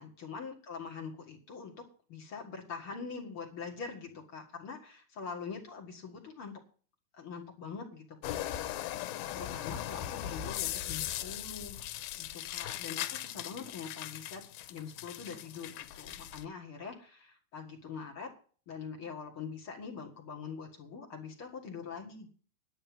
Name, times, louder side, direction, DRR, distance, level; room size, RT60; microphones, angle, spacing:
voice 1, 0.0-1.8 2.1-6.6 7.1-8.5 9.3-11.8 12.1-14.4 14.7-18.3 18.7-22.3, left 5 dB, 45° left, 1 dB, 1.9 m, -44 dB
sound 1, 8.2-16.5, left 12 dB, 80° left, 2.6 m, -39 dB
11.0 x 6.7 x 8.7 m, 0.43 s
omnidirectional pair, 4.4 m